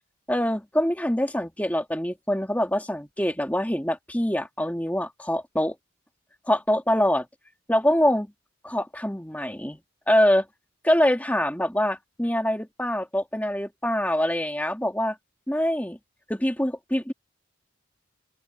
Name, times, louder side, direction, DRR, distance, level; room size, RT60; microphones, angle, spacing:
voice 1, 0.3-5.8 6.5-7.3 7.7-8.3 8.6-9.8 10.1-10.5 10.8-15.2 15.5-16.0 16.3-17.1, left 1 dB, 10° left, 2.2 m, -24 dB
open air
head